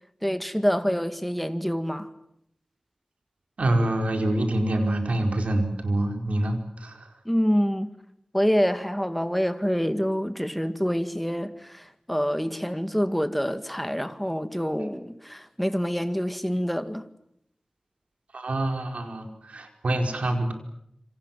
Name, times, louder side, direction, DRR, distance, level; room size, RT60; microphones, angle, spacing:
voice 1, 0.2-2.1 7.3-7.9 8.3-17.1, equal, 5° left, 2.0 m, -26 dB
voice 2, 3.6-7.1 18.3-20.5, right 1 dB, 90° right, 5.0 m, -26 dB
27.5 x 26.5 x 7.6 m
wide cardioid pair, 65°, 2 cm